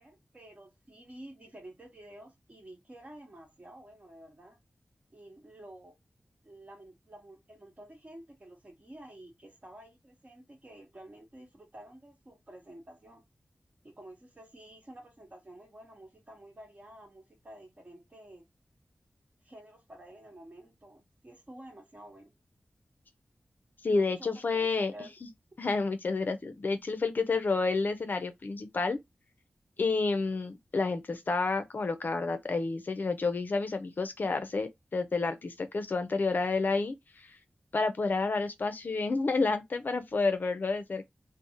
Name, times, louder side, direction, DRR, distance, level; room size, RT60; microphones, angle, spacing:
voice 1, 0.0-4.6 5.1-6.0 6.4-13.2 13.8-18.4 19.4-22.3 23.9-24.3 24.6-25.1, right 1 dB, 40° right, 1.1 m, -51 dB
voice 2, 23.8-24.9 25.6-29.0 29.8-36.9 37.7-41.1, left 3 dB, 55° left, 0.4 m, -30 dB
2.5 x 2.0 x 2.8 m
wide cardioid pair, 65°, 4 cm